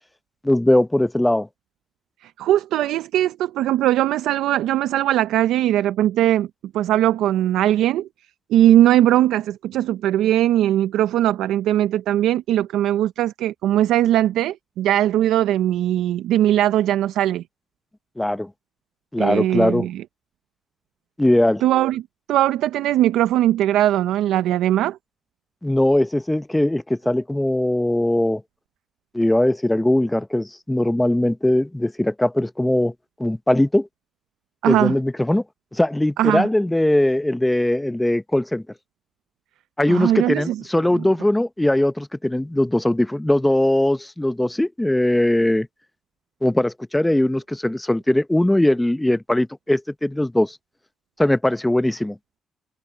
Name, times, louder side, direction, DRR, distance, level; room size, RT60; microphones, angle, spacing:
voice 1, 0.4-1.5 18.2-18.5 19.1-19.9 21.2-21.6 25.6-28.4 29.1-32.9 33.2-33.9 34.7-35.4 35.7-38.6 39.8-45.7 46.4-50.6 51.2-52.2, left 1 dB, 10° left, 0.6 m, -20 dB
voice 2, 2.2-6.5 6.7-8.1 8.5-17.4 19.2-20.0 21.6-22.0 22.3-25.0 34.6-34.9 36.2-36.5 39.9-40.6, right 13 dB, 85° right, 0.5 m, -19 dB
cardioid pair, 90°, 0 cm